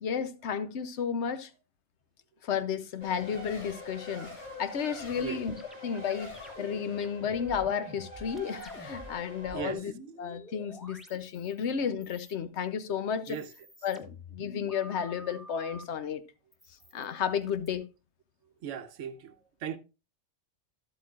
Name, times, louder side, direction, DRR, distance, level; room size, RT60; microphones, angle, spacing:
voice 1, 0.0-1.5 2.4-4.3 4.6-5.5 5.8-9.9 10.2-13.4 13.8-16.2 16.9-17.8, left 7 dB, 65° left, 1.0 m, -32 dB
Race car auto racing, 3.0-9.7, left 2 dB, 40° left, 2.7 m, -44 dB
sound 1, 5.6-9.1 9.4-11.7 12.0-12.7 13.1-15.8 16.5-17.7, equal, ahead, 1.0 m, -49 dB
voice 2, 8.9-9.9 13.3-13.5 18.4-19.8, right 8 dB, 80° right, 1.0 m, -39 dB
12.5 x 8.0 x 2.4 m
omnidirectional pair, 1.3 m